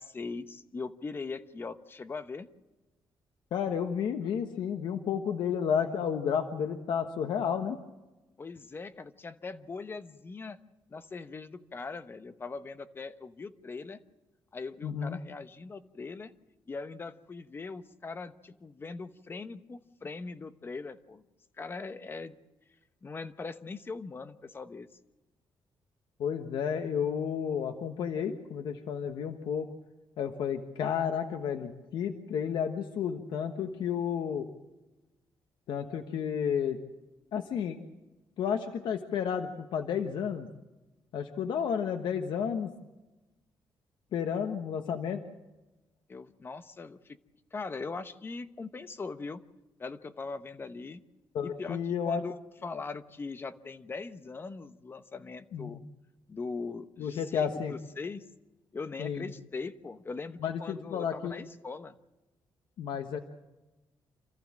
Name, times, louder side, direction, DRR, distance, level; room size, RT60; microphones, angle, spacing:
voice 1, 0.0-2.5 8.4-10.6 10.9-14.0 14.5-16.3 16.7-21.2 21.6-22.4 23.0-24.9 46.1-47.2 47.5-49.4 49.8-51.0 51.4-52.4 52.6-55.8 56.3-58.2 58.7-62.0, left 4 dB, 30° left, 11 dB, 1.0 m, -40 dB
voice 2, 3.5-7.8 14.8-15.2 26.2-29.7 30.2-34.5 35.7-36.8 37.3-37.8 38.4-40.5 41.1-42.7 44.1-45.2 51.3-52.2 55.5-55.8 57.0-57.7 59.0-59.3 60.4-61.4 62.8-63.2, left 7 dB, 80° left, 6 dB, 1.3 m, -31 dB
27.5 x 14.5 x 7.5 m, 1.1 s
cardioid pair, 135°, 8 cm